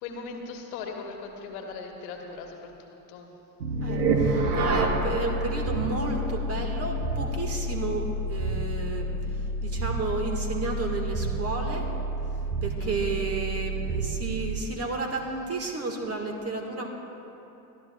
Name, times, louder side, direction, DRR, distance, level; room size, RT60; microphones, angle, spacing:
voice 1, 0.0-3.3 12.8-13.2, left 4 dB, 60° left, 2 dB, 1.5 m, -39 dB
sound 1, 3.6-14.7, right 2 dB, 70° right, 1.2 m, -29 dB
voice 2, 3.8-11.9 12.3-16.9, right 3 dB, 30° right, 3 dB, 1.6 m, -32 dB
23.0 x 11.5 x 2.3 m, 2.9 s
figure-of-eight pair, 65°, 49 cm